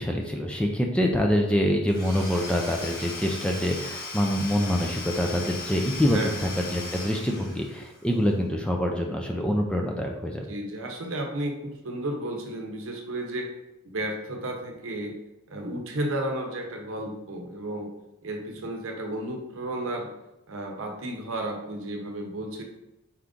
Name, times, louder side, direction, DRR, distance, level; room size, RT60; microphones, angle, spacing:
voice 1, 0.0-10.4, equal, 5° left, 1 dB, 0.3 m, -25 dB
Domestic sounds home sounds / Tools, 1.9-8.0, left 2 dB, 45° left, 1.1 m, -38 dB
voice 2, 6.1-6.5 10.5-13.5 13.8-15.1 15.5-17.9 18.2-20.1 20.5-22.6, right 1 dB, 65° right, 2 dB, 0.8 m, -33 dB
4.4 x 2.5 x 3.6 m, 0.90 s
head